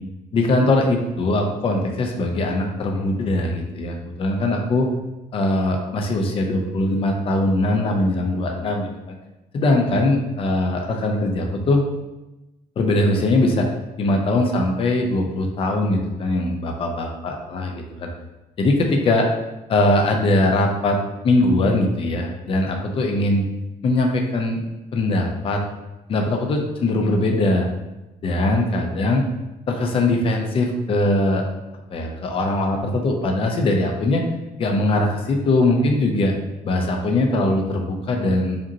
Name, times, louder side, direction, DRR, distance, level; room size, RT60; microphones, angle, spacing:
voice 1, 0.3-4.9 5.3-9.2 9.5-11.8 12.8-13.7 14.0-17.7 18.0-18.1 18.6-19.3 19.7-21.0 21.2-23.5 23.8-24.6 24.9-25.6 26.1-27.7 28.2-29.3 29.7-31.5 31.9-34.2 34.6-36.4 36.6-38.6, left 2 dB, 40° left, 2 dB, 0.6 m, -21 dB
5.0 x 2.8 x 2.8 m, 1.0 s
cardioid pair, 150°, 15 cm